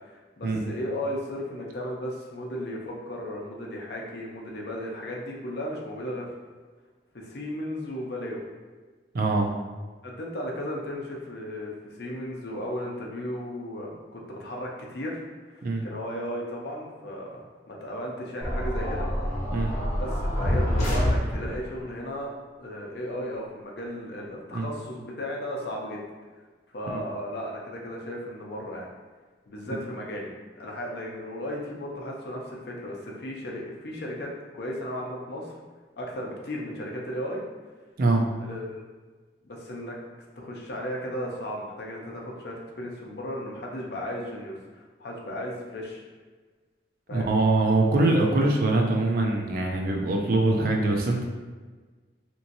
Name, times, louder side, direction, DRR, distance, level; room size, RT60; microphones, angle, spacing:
voice 1, 0.0-6.3 7.1-8.4 10.0-15.2 15.5-19.1 20.0-22.3 22.6-26.0 26.7-28.9 29.5-35.6 36.0-37.4 38.4-38.8 39.4-40.0 40.4-46.0 47.1-47.4, equal, 65° left, -1 dB, 0.6 m, -35 dB
voice 2, 9.1-9.5 15.6-15.8 19.5-19.7 24.5-24.7 26.9-27.0 38.0-38.2 47.1-51.3, right 2 dB, 55° right, 1 dB, 0.4 m, -23 dB
sound 1, 18.4-21.8, equal, 40° left, 1.1 m, -26 dB
2.9 x 2.7 x 2.6 m, 1.4 s
head